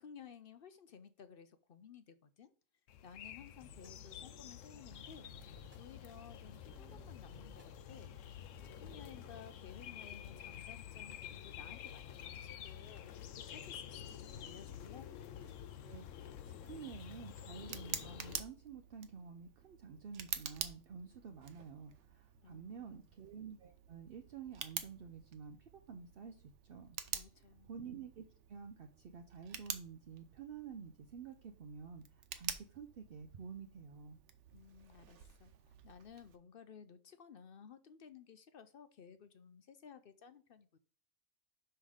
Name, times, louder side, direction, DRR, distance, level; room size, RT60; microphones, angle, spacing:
voice 1, 0.0-2.5 3.0-5.3 5.7-8.1 8.6-13.0 13.3-15.1 22.4-23.1 27.1-27.7 34.5-40.8, left 7 dB, 55° left, 11 dB, 0.7 m, -56 dB
sound 1, 2.9-18.4, left 9 dB, 85° left, 1.0 m, -49 dB
sound 2, 3.6-9.3, right 1 dB, 15° right, 0.4 m, -62 dB
voice 2, 15.8-25.6 25.9-27.0 27.7-32.0 32.3-34.2, right 6 dB, 55° right, 5 dB, 0.8 m, -50 dB
Tick, 16.7-36.4, right 8 dB, 75° right, 1.1 m, -48 dB
5.8 x 5.5 x 4.8 m, 0.41 s
omnidirectional pair, 1.3 m